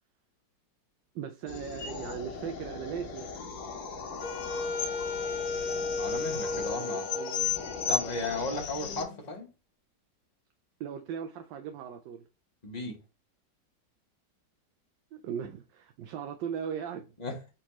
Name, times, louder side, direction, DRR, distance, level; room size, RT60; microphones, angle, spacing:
voice 1, 1.1-3.3 6.9-7.5 10.8-12.2 15.1-17.1, right 8 dB, 80° right, 1.2 m, -38 dB
sound 1, 1.5-9.1, left 6 dB, 85° left, 1.6 m, -36 dB
Wind instrument woodwind instrument, 4.2-9.1, left 3 dB, 65° left, 0.9 m, -35 dB
voice 2, 6.0-7.1 7.9-9.5 12.6-13.0 17.2-17.3, left 3 dB, 30° left, 0.9 m, -35 dB
4.4 x 4.1 x 3.0 m
omnidirectional pair, 2.0 m